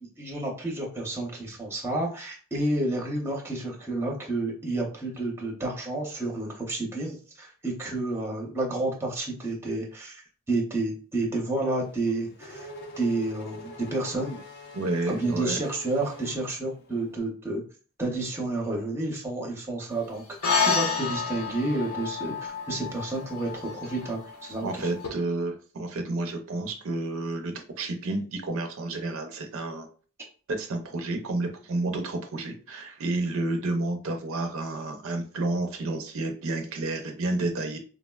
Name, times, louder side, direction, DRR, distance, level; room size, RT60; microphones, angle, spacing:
voice 1, 0.2-12.7 13.0-14.4 15.1-17.6 18.0-20.2 20.6-24.9, right 2 dB, 10° right, -1 dB, 0.6 m, -30 dB
Race car auto racing / Accelerating revving vroom, 11.8-17.1, left 1 dB, 50° left, 0.4 m, -44 dB
voice 2, 14.7-15.6 24.6-29.9 30.5-37.8, right 2 dB, 65° right, 5 dB, 0.5 m, -30 dB
sound 1, 20.4-25.1, left 5 dB, 85° left, 0.7 m, -29 dB
3.6 x 2.0 x 2.2 m, 0.39 s
head